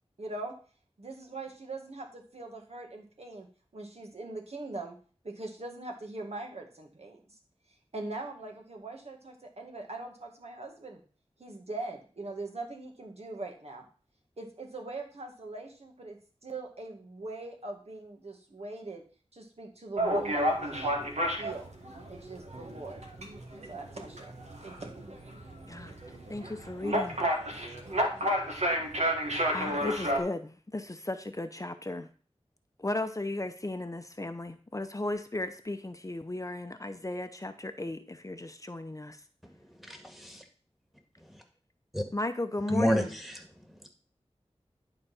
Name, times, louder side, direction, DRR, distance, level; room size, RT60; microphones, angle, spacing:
voice 1, 0.2-0.5 1.0-3.5 3.7-5.0 5.2-7.2 7.9-11.0 11.4-13.8 14.4-19.0 19.3-21.0 21.4-21.7 22.1-23.0 23.7-24.4 24.6-24.9, right 2 dB, 70° right, 1 dB, 1.8 m, -41 dB
sound 1, 20.0-30.2, equal, 85° right, 1.5 m, -31 dB
voice 2, 26.3-27.2 29.5-32.1 32.8-39.2 42.1-43.1, left 2 dB, 30° left, 8 dB, 0.7 m, -35 dB
voice 3, 39.9-40.4 41.9-42.0 42.7-43.4, equal, ahead, 3 dB, 1.8 m, -29 dB
11.0 x 4.0 x 5.5 m, 0.41 s
wide cardioid pair, 50°, 11 cm